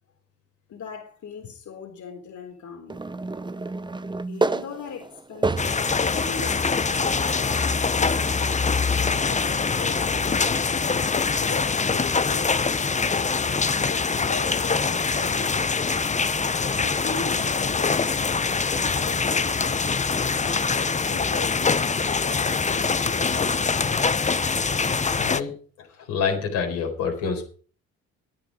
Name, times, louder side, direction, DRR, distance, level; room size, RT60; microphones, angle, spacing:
voice 1, 0.7-3.0 4.3-5.8 6.1-8.2 8.9-11.0 11.4-13.0 13.4-15.5 16.8-19.9 20.4-23.6, left 5 dB, 65° left, 2 dB, 4.0 m, -40 dB
sound 1, 2.9-6.0 6.6-6.7 8.1-8.2, right 3 dB, 15° right, 0.7 m, -28 dB
sound 2, 5.6-25.4, left 4 dB, 20° left, 0.8 m, -24 dB
voice 2, 25.2-25.5 25.8-27.4, left 6 dB, 85° left, 0 dB, 4.5 m, -27 dB
14.0 x 9.5 x 5.3 m, 0.41 s
supercardioid pair, 60°, 32 cm